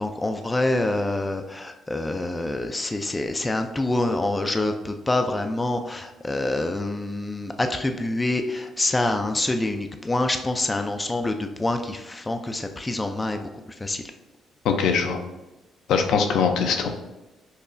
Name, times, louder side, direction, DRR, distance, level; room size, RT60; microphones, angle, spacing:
voice 1, 0.0-13.5 13.8-14.0, left 2 dB, 15° left, 6 dB, 0.3 m, -26 dB
voice 2, 14.6-15.2 15.9-16.9, left 6 dB, 80° left, 5 dB, 0.4 m, -21 dB
5.3 x 2.0 x 2.5 m, 1.0 s
cardioid pair, 90°, 0 cm